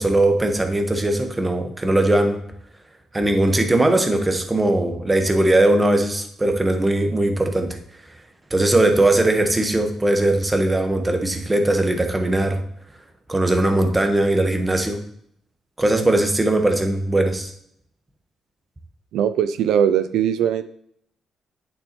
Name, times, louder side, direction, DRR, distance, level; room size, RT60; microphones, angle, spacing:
voice 1, 0.0-2.4 3.1-7.8 8.5-12.6 13.3-15.0 15.8-17.5, right 1 dB, 15° right, 6 dB, 1.1 m, -19 dB
voice 2, 19.1-20.6, right 9 dB, 80° right, 12 dB, 0.3 m, -20 dB
8.5 x 7.0 x 2.9 m, 0.69 s
cardioid pair, 90°, 0 cm